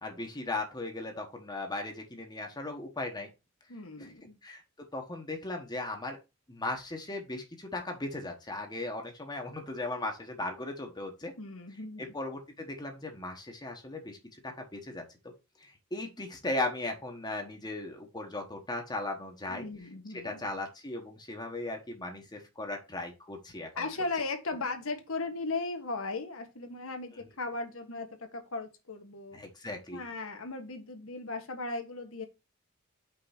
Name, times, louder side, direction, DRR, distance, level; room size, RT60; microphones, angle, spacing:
voice 1, 0.0-3.3 4.0-4.1 4.4-4.6 4.9-6.2 6.5-11.3 12.0-14.2 14.4-15.0 15.6-19.7 20.1-23.7 29.3-30.0, left 2 dB, 20° left, 1.1 m, -37 dB
voice 2, 3.7-4.4 11.4-12.1 19.5-20.5 23.8-29.4 29.9-32.3, left 3 dB, 65° left, 1.4 m, -37 dB
5.6 x 3.7 x 5.8 m
head